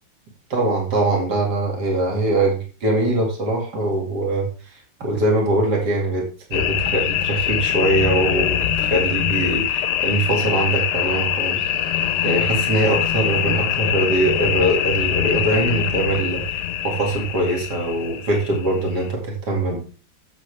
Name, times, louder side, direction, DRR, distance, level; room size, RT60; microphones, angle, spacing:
voice 1, 0.5-6.2 6.5-11.6 12.2-19.8, right 2 dB, 60° right, -1 dB, 3.0 m, -22 dB
sound 1, 6.5-19.1, left 10 dB, 70° left, 1.3 m, -23 dB
14.5 x 6.9 x 3.5 m, 0.38 s
omnidirectional pair, 2.0 m